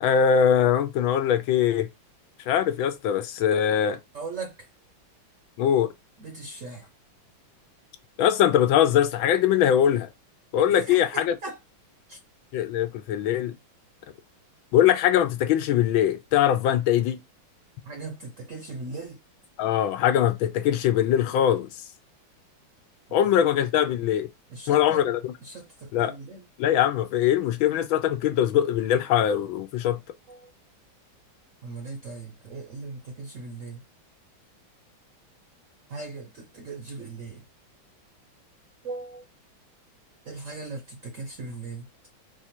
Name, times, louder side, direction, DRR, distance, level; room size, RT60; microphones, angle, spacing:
voice 1, 0.0-1.9 2.5-4.0 5.6-5.9 8.2-10.1 10.5-11.4 12.5-13.5 14.7-17.2 19.6-21.7 23.1-24.3 24.7-25.3 25.9-26.1 26.6-30.0, left 10 dB, 75° left, 1.4 m, -22 dB
voice 2, 4.1-4.7 6.2-6.9 10.6-11.6 12.1-12.2 17.8-19.2 24.5-25.0 25.4-26.5 30.3-30.5 31.6-33.8 35.9-37.4 38.8-39.2 40.3-41.9, right 3 dB, 55° right, 0.9 m, -38 dB
4.9 x 2.5 x 4.3 m
omnidirectional pair, 2.2 m